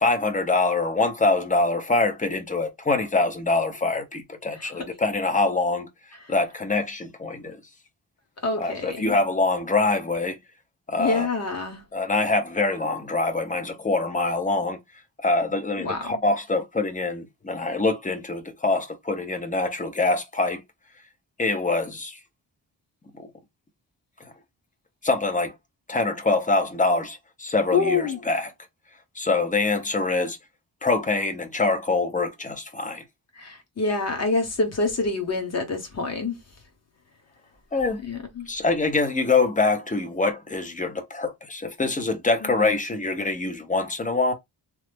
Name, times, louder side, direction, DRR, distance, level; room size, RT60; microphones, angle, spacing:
voice 1, 0.0-5.9 6.3-7.6 8.6-10.4 10.9-11.3 11.9-14.8 15.2-20.6 21.4-22.2 23.2-23.3 25.0-25.5 25.9-28.5 29.2-30.4 30.8-33.0 37.7-38.0 38.5-44.3, left 3 dB, 20° left, 0.6 m, -24 dB
voice 2, 8.4-9.2 11.0-11.8 15.8-16.2 27.7-28.2 33.3-36.4 38.0-38.5 42.4-42.7, left 3 dB, 40° left, 1.0 m, -26 dB
3.1 x 2.0 x 3.4 m
wide cardioid pair, 135°, 40 cm